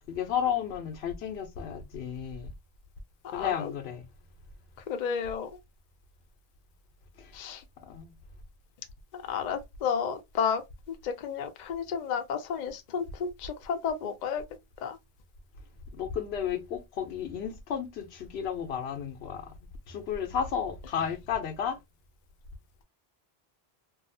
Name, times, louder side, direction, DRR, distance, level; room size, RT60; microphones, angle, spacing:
voice 1, 0.0-2.5 3.3-4.1 7.2-7.3 7.8-8.1 15.9-19.5 19.9-21.8, left 8 dB, 85° left, 0.9 m, -33 dB
voice 2, 3.2-3.7 4.9-5.5 7.3-7.6 9.1-14.4 14.8-15.0, left 7 dB, 55° left, 0.6 m, -32 dB
2.7 x 2.3 x 2.6 m
omnidirectional pair, 1.0 m